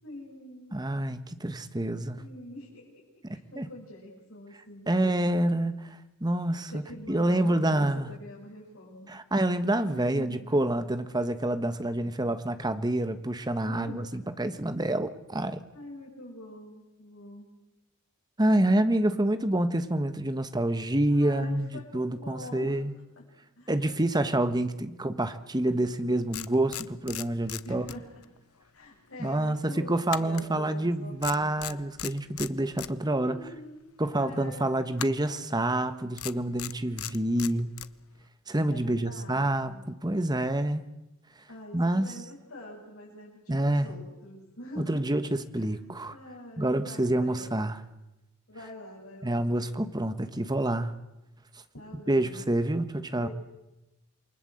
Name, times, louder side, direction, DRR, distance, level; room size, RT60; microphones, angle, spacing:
voice 1, 0.0-0.8 2.2-3.0 3.3-5.5 6.7-9.2 9.9-10.7 11.7-12.3 13.6-14.0 15.7-17.5 21.0-22.8 23.2-23.3 23.5-24.0 24.9-25.2 27.6-28.2 28.7-31.7 33.1-33.9 34.2-34.7 38.7-39.9 41.5-45.0 45.5-45.8 46.1-47.5 48.5-49.5 51.7-52.4 53.1-53.3, left 1 dB, 65° left, -5 dB, 7.6 m, -45 dB
voice 2, 0.7-2.2 3.6-3.7 4.9-5.8 6.2-6.8 7.1-8.1 9.1-15.6 18.4-22.9 23.7-27.8 29.2-33.4 34.0-37.7 38.5-40.8 41.7-42.1 43.5-43.9 44.8-46.1 46.6-47.8 49.2-50.9 52.1-53.3, right 1 dB, 20° right, 10 dB, 1.3 m, -27 dB
sound 1, 25.8-25.9 26.3-28.4 28.6-28.8 30.1-30.9 31.2-32.9 34.9-35.4 36.2-37.9, left 12 dB, 85° left, 0.9 m, -38 dB
28.5 x 23.5 x 7.9 m, 0.98 s
head